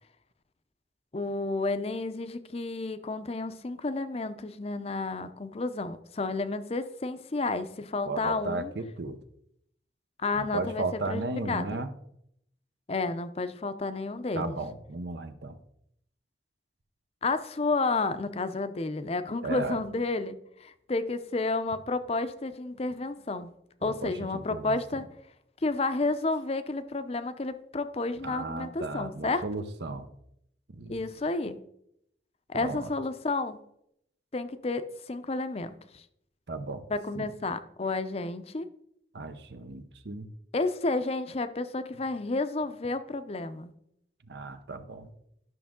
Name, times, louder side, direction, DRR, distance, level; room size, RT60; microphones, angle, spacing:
voice 1, 1.1-8.7 10.2-11.8 12.9-14.6 17.2-23.5 23.8-25.1 25.6-29.4 30.9-31.6 32.5-33.6 34.3-36.0 36.9-38.7 40.5-43.7, left 3 dB, 35° left, 11 dB, 0.6 m, -31 dB
voice 2, 8.1-9.2 10.3-11.9 14.3-15.6 19.4-19.8 23.8-24.8 28.2-30.1 30.7-31.0 32.5-32.9 36.5-36.8 37.2-37.3 39.1-40.3 44.3-45.1, right 3 dB, 70° right, 9 dB, 0.8 m, -35 dB
12.5 x 6.2 x 3.7 m, 0.75 s
head